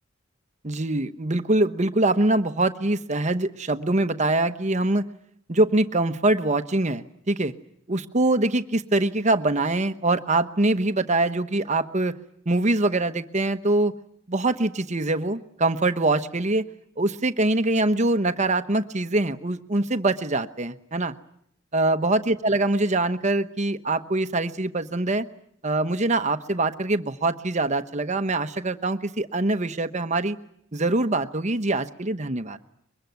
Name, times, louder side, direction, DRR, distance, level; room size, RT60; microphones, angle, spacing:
voice 1, 0.6-5.0 5.5-7.5 7.9-12.2 12.5-13.9 14.3-16.7 17.0-21.1 21.7-25.3 25.6-30.4 30.7-32.6, right 2 dB, 35° right, 9 dB, 1.1 m, -23 dB
24.0 x 22.5 x 9.4 m, 0.69 s
head